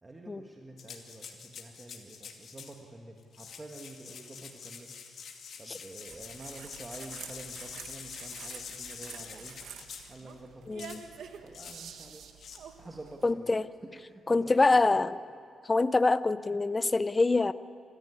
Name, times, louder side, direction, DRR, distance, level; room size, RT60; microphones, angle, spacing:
voice 1, 0.0-4.9 5.6-9.6 10.1-11.1 11.4-12.2 12.8-13.6 14.0-14.5 14.9-15.0, right 2 dB, 20° right, 1 dB, 1.5 m, -48 dB
sound 1, 0.8-2.8 3.2-10.2 10.8-11.0 11.5-11.8 12.4-12.6, left 6 dB, 55° left, 2.4 m, -46 dB
sound 2, 6.1-13.3, right 7 dB, 75° right, 1.5 m, -48 dB
voice 2, 10.7-11.0 13.2-13.7 14.3-15.2 15.6-17.5, left 3 dB, 20° left, 15 dB, 0.6 m, -25 dB
25.5 x 14.0 x 9.7 m, 2.3 s
cardioid pair, 125°, 0 cm